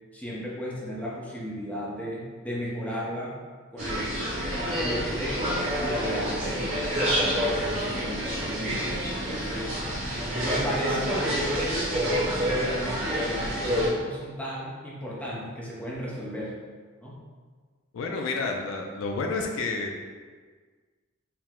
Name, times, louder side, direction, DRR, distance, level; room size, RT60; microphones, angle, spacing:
voice 1, 0.1-3.3 3.7-4.1 4.8-9.7 10.4-16.6 17.0-17.2, equal, 5° left, -6 dB, 0.7 m, -34 dB
sound 1, 3.8-13.9, equal, 35° right, 1.0 m, -28 dB
voice 2, 17.9-20.0, left 3 dB, 70° left, 2 dB, 0.4 m, -30 dB
4.5 x 2.1 x 3.6 m, 1.5 s
head